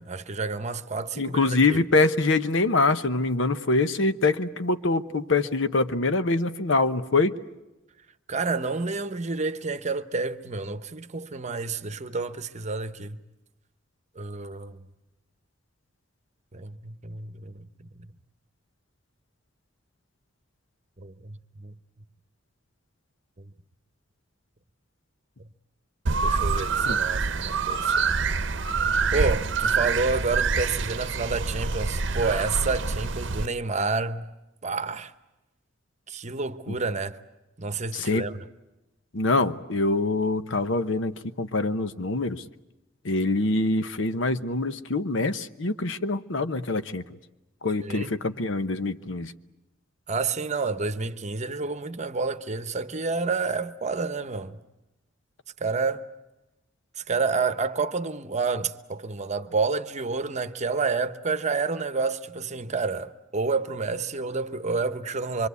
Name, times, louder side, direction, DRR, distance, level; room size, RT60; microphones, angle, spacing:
voice 1, 0.0-1.8 8.3-13.2 14.2-14.8 16.5-17.6 21.0-21.7 26.2-28.1 29.1-34.3 34.6-35.1 36.1-37.2 37.6-38.4 47.8-48.1 50.1-54.6 55.6-56.0 57.1-65.5, right 4 dB, 35° right, 1.0 m, -29 dB
voice 2, 1.2-7.3 26.8-27.0 36.7-36.8 37.9-38.3 39.1-42.4 43.0-47.0 47.6-49.3, left 3 dB, 70° left, 1.0 m, -24 dB
sound 1, 26.1-33.5, right 4 dB, 65° right, 0.8 m, -26 dB
25.5 x 24.5 x 8.3 m
head